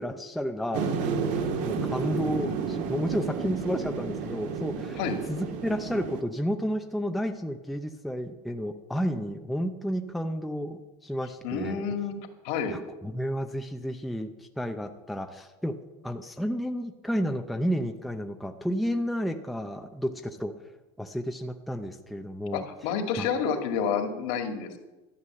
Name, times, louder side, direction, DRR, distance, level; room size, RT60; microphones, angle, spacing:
voice 1, 0.0-5.0 5.3-11.8 12.7-15.8 16.0-20.5 21.0-22.7 23.2-23.3, equal, ahead, 5 dB, 0.5 m, -31 dB
sound 1, 0.7-6.2, right 5 dB, 50° right, 1.5 m, -31 dB
voice 2, 11.4-12.2 12.4-12.8 22.5-24.8, left 6 dB, 60° left, 5 dB, 2.1 m, -29 dB
13.0 x 8.2 x 7.5 m, 1.1 s
supercardioid pair, 150°, 16 cm